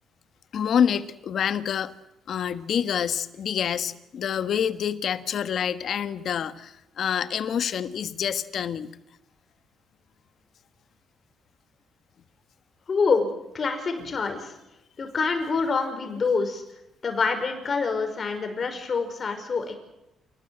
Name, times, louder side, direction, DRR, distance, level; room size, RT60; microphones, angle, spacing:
voice 1, 0.5-1.9 2.3-8.9 14.0-14.1, left 8 dB, 65° left, 12 dB, 1.5 m, -27 dB
voice 2, 12.9-13.3 13.5-14.5 15.0-16.6 17.0-19.8, left 4 dB, 45° left, 6 dB, 5.6 m, -26 dB
27.5 x 19.5 x 7.9 m, 0.88 s
cardioid pair, 90°, 0 cm